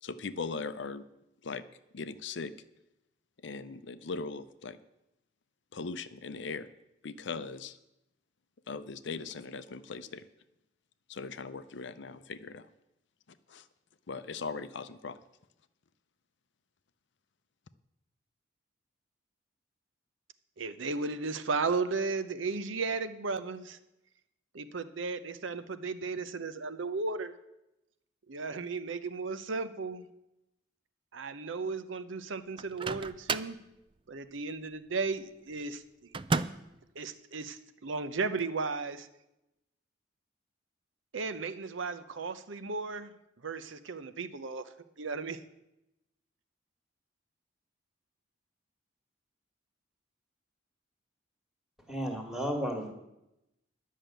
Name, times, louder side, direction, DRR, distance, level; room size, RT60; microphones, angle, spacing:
voice 1, 0.0-1.0 1.4-1.6 1.9-2.5 3.4-4.8 5.7-6.7 7.0-7.8 8.7-10.2 11.1-12.7 13.5-13.6 14.1-15.2, left 4 dB, 65° left, 12 dB, 0.6 m, -39 dB
voice 2, 20.6-23.8 24.5-27.3 28.3-30.1 31.1-33.6 34.1-35.8 37.0-39.1 41.1-43.1 43.4-44.7 45.0-45.4, right 4 dB, 75° right, 11 dB, 0.7 m, -35 dB
Microwave oven, 32.6-33.6 36.1-36.8, right 4 dB, 25° right, 0.3 m, -32 dB
voice 3, 51.9-52.9, equal, ahead, 3 dB, 1.7 m, -33 dB
11.0 x 6.5 x 9.0 m, 0.89 s
head